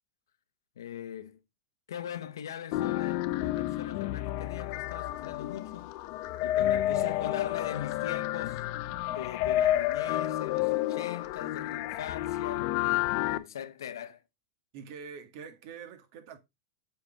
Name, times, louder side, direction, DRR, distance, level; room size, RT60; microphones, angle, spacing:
voice 1, 0.8-1.4 1.9-5.9 6.4-8.7 9.1-12.8 13.3-14.2, left 9 dB, 85° left, 1.0 m, -40 dB
sound 1, 2.7-13.4, left 14 dB, 55° left, 0.8 m, -30 dB
voice 2, 14.7-16.4, right 6 dB, 55° right, 2.0 m, -45 dB
8.0 x 6.0 x 3.7 m
hypercardioid pair, 125°, 2 cm